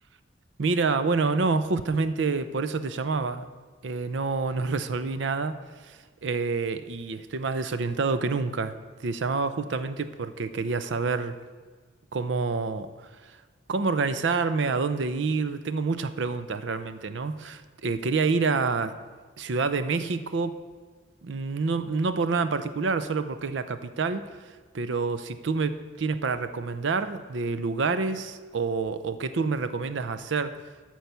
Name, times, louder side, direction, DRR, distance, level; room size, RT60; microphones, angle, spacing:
voice 1, 0.6-3.5 3.8-5.6 5.8-8.7 9.0-11.3 12.1-12.9 13.7-19.0 19.4-20.6 21.2-24.2 24.7-30.5, right 4 dB, 65° right, 12 dB, 0.5 m, -27 dB
12.5 x 4.6 x 6.8 m, 1.4 s
head